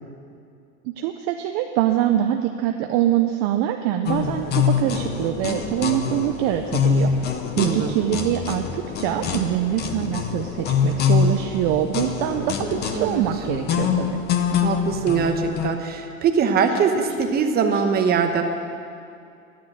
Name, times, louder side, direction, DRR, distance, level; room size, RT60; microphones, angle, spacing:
voice 1, 0.8-7.1 7.6-14.2, right 12 dB, 40° right, 5 dB, 0.6 m, -24 dB
sound 1, 4.0-17.9, left 4 dB, 55° left, 1.7 m, -38 dB
sound 2, 4.1-15.7, left 6 dB, 25° left, 0.7 m, -24 dB
voice 2, 7.6-8.0 12.9-13.2 14.6-18.4, right 6 dB, 20° right, 5 dB, 1.0 m, -22 dB
12.0 x 8.1 x 7.8 m, 2.5 s
supercardioid pair, 140°, 42 cm